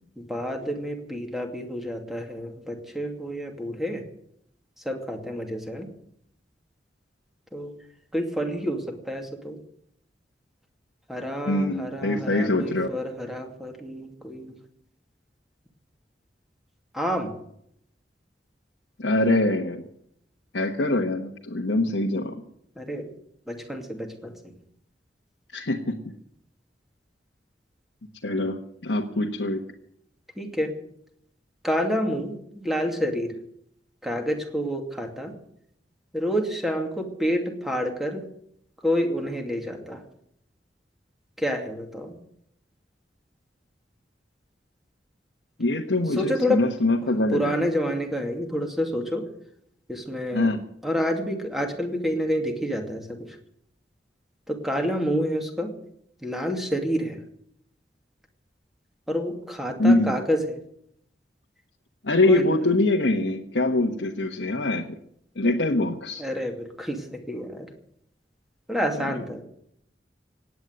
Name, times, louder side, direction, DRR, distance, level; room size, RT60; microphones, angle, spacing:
voice 1, 0.2-4.0 4.8-5.9 7.5-7.7 8.1-9.6 11.1-14.5 16.9-17.3 22.8-23.1 23.5-24.5 30.4-30.7 31.6-33.3 34.0-35.3 36.1-38.2 38.8-40.0 41.4-42.2 46.2-46.6 47.3-49.2 49.9-50.5 50.8-53.4 54.5-55.7 56.2-57.2 59.1-60.6 62.3-62.5 66.2-67.7 68.7-69.4, equal, ahead, 3 dB, 2.5 m, -28 dB
voice 2, 11.5-12.9 19.0-19.8 20.5-22.4 25.5-26.0 28.2-29.6 45.6-47.6 50.3-50.6 59.8-60.2 62.0-65.0 65.3-66.2, left 2 dB, 85° left, 1 dB, 1.3 m, -24 dB
17.0 x 9.4 x 8.1 m, 0.72 s
head